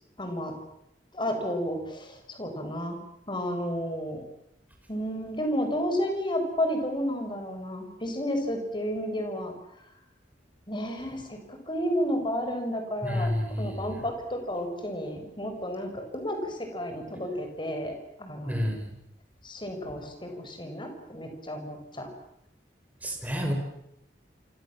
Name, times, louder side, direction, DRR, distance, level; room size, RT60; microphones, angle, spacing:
voice 1, 0.2-0.5 1.1-3.0 3.3-4.2 4.9-9.5 10.7-13.3 13.6-18.7 19.4-22.1, equal, 25° left, 5 dB, 6.0 m, -32 dB
voice 2, 13.0-14.0 18.5-18.8 23.0-23.5, equal, 10° right, 2 dB, 6.5 m, -29 dB
28.0 x 26.0 x 7.6 m, 0.79 s
head